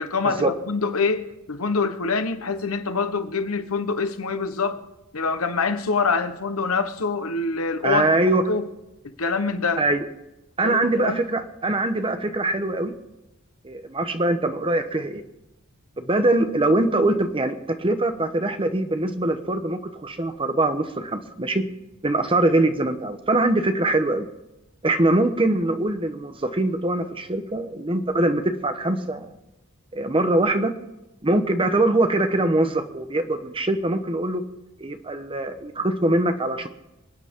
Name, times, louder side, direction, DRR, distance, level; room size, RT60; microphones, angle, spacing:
voice 1, 0.0-4.8 5.1-8.7 9.2-9.8 10.6-11.2, left 4 dB, 85° left, 1.1 m, -25 dB
voice 2, 7.8-8.4 9.8-10.0 10.6-12.9 13.6-15.2 16.0-21.6 22.0-24.3 24.8-29.3 29.9-30.7 31.2-34.4 34.8-36.7, right 2 dB, 25° right, 1.0 m, -23 dB
27.0 x 9.3 x 3.7 m
head